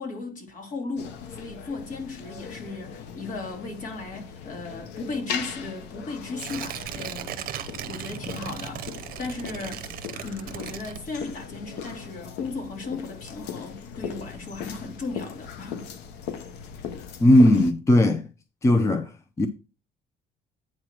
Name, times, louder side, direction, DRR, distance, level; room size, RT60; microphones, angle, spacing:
voice 1, 0.0-7.3 7.8-9.9 10.2-15.9, left 3 dB, 50° left, 2.4 m, -36 dB
sound 1, 1.0-17.7, left 7 dB, 85° left, 0.9 m, -39 dB
Tearing, 6.3-11.5 11.8-11.9, right 10 dB, 60° right, 0.7 m, -37 dB
voice 2, 17.2-18.2 18.6-19.1 19.4-19.5, left 1 dB, 15° left, 0.5 m, -17 dB
8.5 x 3.0 x 6.3 m
cardioid pair, 110°, 17 cm